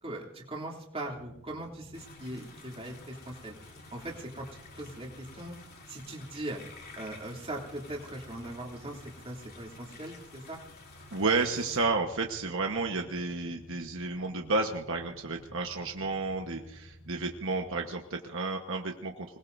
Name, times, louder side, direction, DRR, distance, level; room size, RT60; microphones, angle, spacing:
voice 1, 0.0-3.5 3.9-4.5 4.7-5.5 5.9-6.6 7.0-10.6, right 1 dB, 25° right, -2 dB, 2.9 m, -40 dB
sound 1, 1.0-17.8, equal, 75° left, 5.7 m, -54 dB
sound 2, 1.9-11.8, left 3 dB, 45° left, 3.2 m, -52 dB
voice 2, 11.1-19.4, right 3 dB, 60° right, 2 dB, 1.3 m, -31 dB
26.0 x 19.5 x 2.7 m, 0.88 s
head